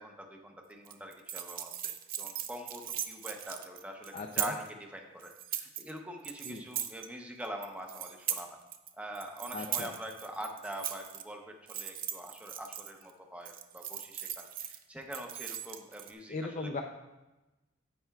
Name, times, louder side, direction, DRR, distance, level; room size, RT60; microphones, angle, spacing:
voice 1, 0.0-1.9 2.2-4.6 4.9-8.6 9.0-16.7, right 1 dB, 5° right, 2 dB, 0.7 m, -44 dB
sound 1, 0.8-4.7 5.2-5.9 6.2-7.1 7.4-8.9 9.1-11.2 11.7-13.1 13.4-14.8 15.1-16.1, right 10 dB, 45° right, 0.5 m, -39 dB
voice 2, 4.1-4.5 6.4-6.6 9.5-9.9 16.3-16.8, left 3 dB, 40° left, 3 dB, 0.4 m, -37 dB
10.0 x 7.8 x 2.3 m, 1.1 s
head